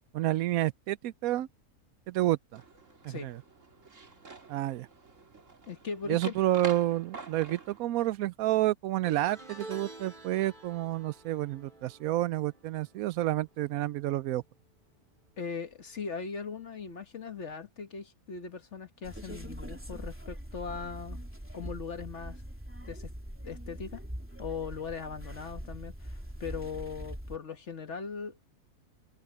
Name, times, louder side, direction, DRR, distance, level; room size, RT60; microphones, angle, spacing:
voice 1, 0.1-1.5 2.1-2.6 3.0-3.4 4.5-4.9 6.1-14.4, right 15 dB, 75° right, 1.0 m, -29 dB
sound 1, 2.6-7.8, right 4 dB, 60° right, 2.6 m, -47 dB
voice 2, 5.7-6.4 15.4-21.2 21.5-22.4 22.9-23.1 23.4-24.0 24.4-28.4, left 5 dB, 55° left, 1.6 m, -39 dB
sound 2, 9.0-14.4 14.7-15.1 16.3-16.4, right 2 dB, 30° right, 4.8 m, -50 dB
sound 3, 19.0-27.4, equal, 10° right, 3.3 m, -42 dB
omnidirectional pair, 1.5 m